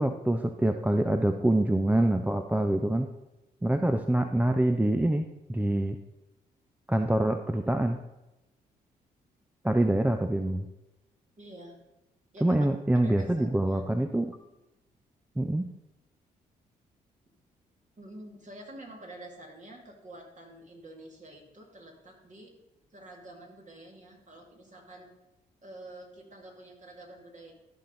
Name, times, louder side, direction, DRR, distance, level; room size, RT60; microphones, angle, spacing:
voice 1, 0.0-3.1 3.6-6.0 6.9-8.0 9.6-10.7 12.4-14.4 15.4-15.7, right 1 dB, 5° right, 8 dB, 0.5 m, -25 dB
voice 2, 11.4-11.8 12.3-12.7 12.9-13.8 18.0-22.5 22.9-25.1 25.6-27.5, right 1 dB, 40° right, 1 dB, 2.4 m, -48 dB
13.0 x 5.6 x 3.9 m, 0.99 s
hypercardioid pair, 40°, 20 cm